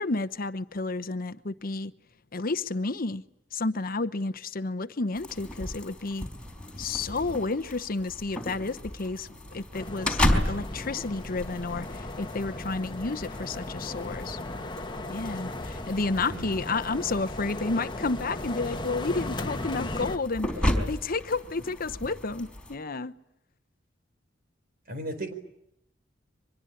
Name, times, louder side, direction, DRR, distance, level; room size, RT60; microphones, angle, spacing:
voice 1, 0.0-1.9 2.3-3.2 3.5-6.3 6.8-14.4 15.1-20.5 20.9-23.1, left 3 dB, 50° left, 1.0 m, -31 dB
sound 1, 5.1-22.8, left 1 dB, 5° left, 4.3 m, -34 dB
sound 2, 7.6-22.0, equal, 35° right, 6.1 m, -55 dB
sound 3, 9.7-20.2, left 1 dB, 25° left, 1.4 m, -36 dB
voice 2, 24.9-25.3, right 1 dB, 55° right, 4.5 m, -35 dB
24.5 x 21.5 x 10.0 m
head